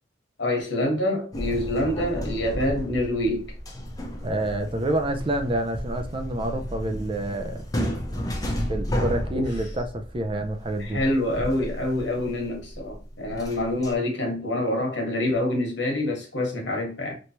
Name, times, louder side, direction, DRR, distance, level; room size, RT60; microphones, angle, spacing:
voice 1, 0.4-3.5 9.3-9.5 10.8-17.2, left 1 dB, 80° left, 1.4 m, -26 dB
sound 1, 1.3-13.9, equal, 20° left, 0.7 m, -33 dB
voice 2, 4.2-7.6 8.7-11.0, right 1 dB, 30° right, 0.4 m, -28 dB
3.3 x 3.1 x 2.8 m
head